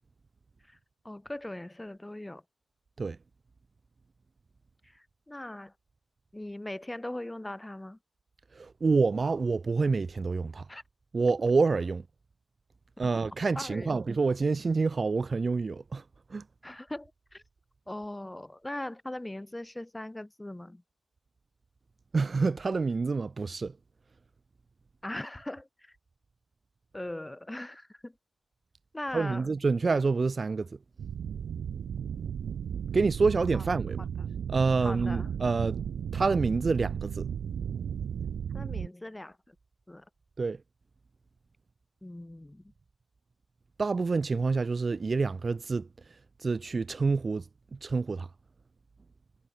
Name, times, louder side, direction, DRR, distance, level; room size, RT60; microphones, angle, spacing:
voice 1, 1.0-2.4 4.9-5.7 6.3-8.0 10.7-10.8 13.5-14.0 16.6-17.4 17.9-20.8 25.0-25.9 26.9-28.1 28.9-29.5 33.5-33.6 34.0-34.3 34.8-35.3 38.5-39.5 39.9-40.0 42.0-42.6, left 1 dB, 10° left, 1.3 m, -40 dB
voice 2, 8.6-10.6 11.1-12.0 13.0-16.0 16.3-16.4 22.1-23.7 29.1-30.7 32.9-34.0 34.5-35.8 36.1-37.3 40.4-40.6 43.8-45.9 46.4-47.4 47.8-48.3, right 4 dB, 40° right, 0.6 m, -27 dB
sound 1, 31.0-38.9, right 8 dB, 90° right, 0.9 m, -34 dB
wide cardioid pair, 105°, 0 cm